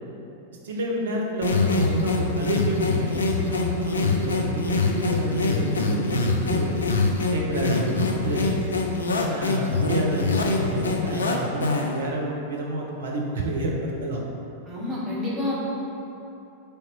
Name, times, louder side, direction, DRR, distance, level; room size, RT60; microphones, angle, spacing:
voice 1, 0.6-6.7 7.3-8.6 9.3-14.2, right 2 dB, 65° right, -1 dB, 0.6 m, -29 dB
sound 1, 1.4-12.0, left 3 dB, 70° left, 0.3 m, -24 dB
voice 2, 14.6-15.5, left 2 dB, 15° right, -9 dB, 1.4 m, -28 dB
3.2 x 2.9 x 4.3 m, 2.9 s
figure-of-eight pair, 90°, 0 cm